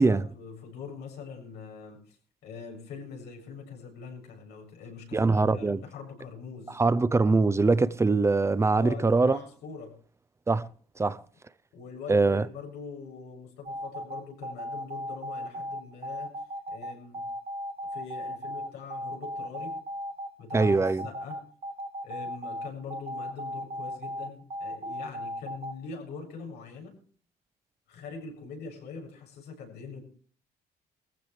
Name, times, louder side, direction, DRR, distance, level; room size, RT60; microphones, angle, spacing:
voice 1, 0.0-2.2 2.4-6.8 8.7-9.9 11.7-16.3 16.7-17.3 17.9-19.8 20.4-21.4 22.0-26.9 27.9-30.0, left 5 dB, 75° left, 7.1 m, -43 dB
voice 2, 5.1-5.8 6.8-9.4 10.5-10.7 11.0-11.2 12.1-12.4 20.5-21.1, right 3 dB, 15° right, 0.6 m, -23 dB
sound 1, 13.7-25.7, equal, 35° right, 1.7 m, -36 dB
20.5 x 15.0 x 3.3 m
cardioid pair, 110°, 17 cm